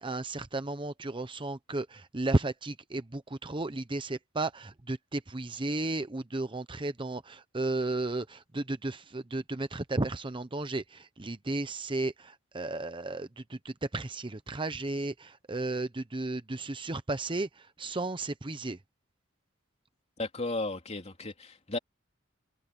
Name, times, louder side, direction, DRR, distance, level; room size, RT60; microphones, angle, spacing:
voice 1, 0.0-18.8, right 2 dB, 25° right, 0.8 m, -34 dB
voice 2, 20.2-21.8, left 2 dB, 35° left, 2.9 m, -34 dB
head